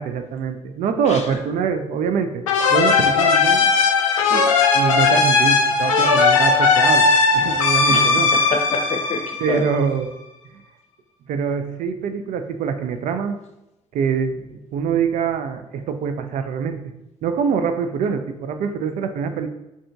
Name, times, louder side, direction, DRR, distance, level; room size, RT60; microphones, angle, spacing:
voice 1, 0.0-2.4 2.7-3.7 4.7-7.1 7.3-8.3 9.4-10.1 11.3-13.4 13.9-16.9 17.2-19.5, right 6 dB, 50° right, 8 dB, 0.4 m, -24 dB
voice 2, 1.0-1.4 4.2-4.5 7.9-9.7, left 3 dB, 40° left, 4 dB, 0.6 m, -28 dB
sound 1, 2.5-9.9, left 4 dB, 80° left, 0.4 m, -17 dB
4.9 x 2.8 x 2.3 m, 0.91 s
figure-of-eight pair, 45°, 17 cm